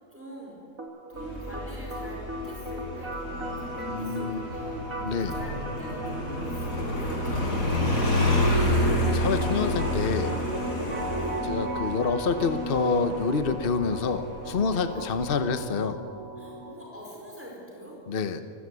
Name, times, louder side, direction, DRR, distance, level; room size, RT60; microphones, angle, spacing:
voice 1, 0.1-0.6 1.1-8.7 11.1-11.4 14.9-15.0 15.4-15.6 16.4-18.0, equal, 10° right, -2 dB, 4.8 m, -44 dB
sound 1, 0.8-16.8, right 1 dB, 90° right, 3.3 m, -37 dB
Motorcycle, 1.2-15.5, left 1 dB, 90° left, 5.8 m, -29 dB
voice 2, 3.9-4.4 5.0-5.4 9.0-10.4 11.4-16.0 18.1-18.4, left 5 dB, 45° left, 10 dB, 1.1 m, -27 dB
28.5 x 15.0 x 9.6 m, 2.6 s
omnidirectional pair, 1.4 m